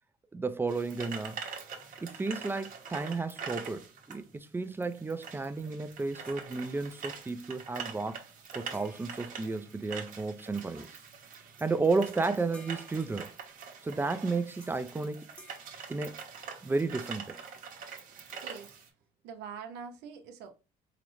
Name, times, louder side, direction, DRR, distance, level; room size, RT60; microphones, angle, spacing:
voice 1, 0.3-1.4 2.0-8.2 8.5-10.9 11.6-13.3 13.8-15.2 15.9-16.2 16.6-17.4, right 3 dB, 15° right, 0.3 m, -32 dB
sound 1, 0.7-18.9, right 6 dB, 50° right, 0.9 m, -44 dB
sound 2, 6.2-7.2 8.7-10.3 11.6-11.8 12.1-13.9 14.6-15.0 15.4-16.8, left 1 dB, 5° left, 0.9 m, -58 dB
voice 2, 18.4-18.8 19.2-20.5, right 6 dB, 85° right, 0.6 m, -44 dB
4.9 x 2.0 x 3.0 m
cardioid pair, 110°, 17 cm